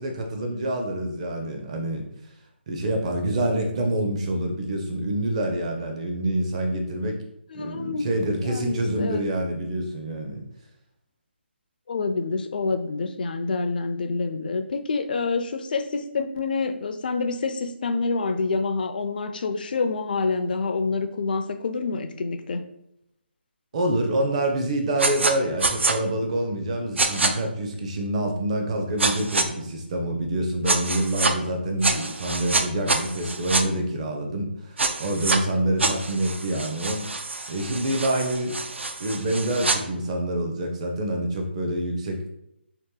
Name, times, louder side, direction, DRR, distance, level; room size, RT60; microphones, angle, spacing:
voice 1, 0.0-2.1 2.7-7.2 7.5-10.4 23.7-37.1 37.5-38.6 39.0-42.3, right 1 dB, 35° right, 4 dB, 0.6 m, -26 dB
voice 2, 7.5-8.1 8.4-9.3 11.9-22.7, left 4 dB, 50° left, 7 dB, 0.4 m, -27 dB
sound 1, 25.0-25.3 25.6-25.9 27.0-27.3 29.0-29.5 30.7-31.3 31.8-33.6 34.8-35.4 35.8-39.8, right 3 dB, 80° right, 0.4 m, -26 dB
2.9 x 2.6 x 3.6 m, 0.80 s
figure-of-eight pair, 155°, 6 cm